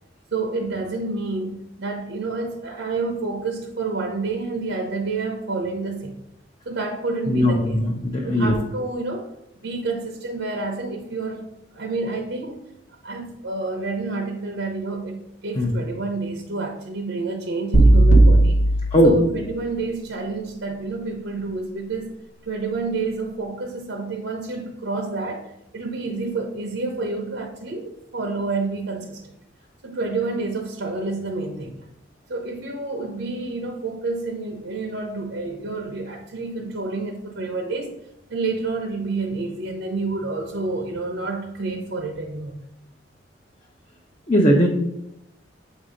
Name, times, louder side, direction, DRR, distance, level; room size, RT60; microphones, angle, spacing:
voice 1, 0.3-6.1 6.7-7.8 8.2-11.5 11.7-12.7 13.0-18.7 19.0-22.1 22.4-29.3 29.8-31.8 32.3-38.0 38.3-42.5, right 3 dB, 80° right, 0.8 m, -29 dB
voice 2, 7.3-8.5 15.6-15.7 18.9-19.1 44.3-44.7, equal, 30° left, 0.7 m, -18 dB
sound 1, 17.7-19.8, right 2 dB, 80° left, 1.1 m, -16 dB
7.5 x 2.8 x 4.9 m
head